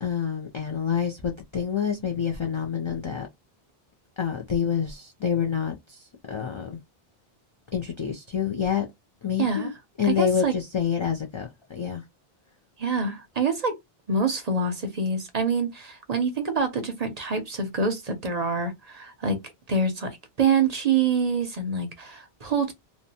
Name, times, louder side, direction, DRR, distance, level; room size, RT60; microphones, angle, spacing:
voice 1, 0.0-3.3 4.2-6.8 7.7-8.9 9.2-9.7 10.0-12.0, left 8 dB, 50° left, 0.3 m, -27 dB
voice 2, 9.4-9.7 10.1-10.5 12.8-13.8 14.1-19.4 19.7-22.7, right 4 dB, 50° right, 0.6 m, -26 dB
2.7 x 2.2 x 2.7 m
omnidirectional pair, 1.1 m